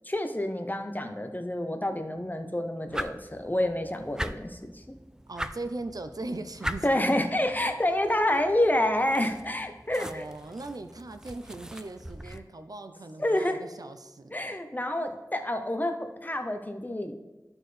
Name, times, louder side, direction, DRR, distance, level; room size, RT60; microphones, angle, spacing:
voice 1, 0.1-5.0 6.8-10.3 13.2-13.6 14.3-17.1, left 1 dB, 25° left, 6 dB, 0.7 m, -28 dB
sound 1, 2.9-12.4, equal, 10° right, 0.4 m, -41 dB
voice 2, 5.3-6.9 7.6-7.7 8.1-8.4 10.0-14.6, right 2 dB, 65° right, 8 dB, 0.5 m, -39 dB
13.0 x 4.4 x 3.3 m, 1.1 s
wide cardioid pair, 50°, 7 cm